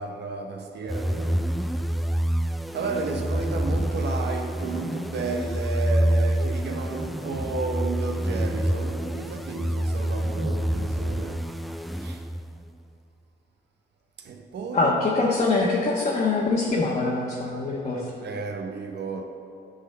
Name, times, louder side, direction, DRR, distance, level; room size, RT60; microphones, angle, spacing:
voice 1, 0.0-1.5 2.7-11.5 11.9-12.2 14.2-15.0 18.2-19.2, right 4 dB, 60° right, 0.8 m, -32 dB
sound 1, 0.9-12.6, equal, ahead, 0.3 m, -27 dB
voice 2, 14.7-18.1, left 3 dB, 35° left, 1.2 m, -24 dB
9.8 x 4.0 x 6.7 m
cardioid pair, 90°, 20 cm